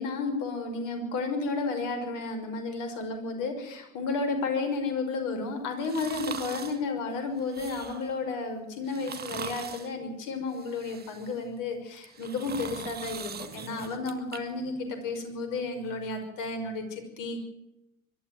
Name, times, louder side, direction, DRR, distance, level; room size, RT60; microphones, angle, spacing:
voice 1, 0.0-17.4, left 3 dB, 50° left, 6 dB, 5.9 m, -32 dB
sound 1, 5.8-6.8 7.4-8.1 8.8-9.9 10.5-11.4 12.0-14.4 14.8-14.9, right 7 dB, 25° right, 2.0 m, -41 dB
23.0 x 12.5 x 9.3 m, 0.87 s
figure-of-eight pair, 85°, 41 cm